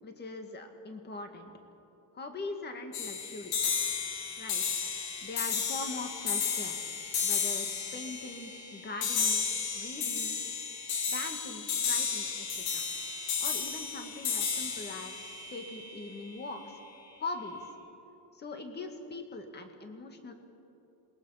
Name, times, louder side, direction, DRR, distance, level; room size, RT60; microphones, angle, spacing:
voice 1, 0.0-1.5 2.1-3.5 4.4-4.6 5.2-6.8 7.2-9.5 9.7-10.4 11.1-12.8 13.4-16.8 17.2-17.7 18.3-20.3, left 3 dB, 25° left, 5 dB, 1.9 m, -41 dB
sound 1, 2.9-16.4, left 6 dB, 60° left, 3.6 m, -33 dB
27.5 x 21.5 x 5.8 m, 2.9 s
cardioid pair, 175°, 41 cm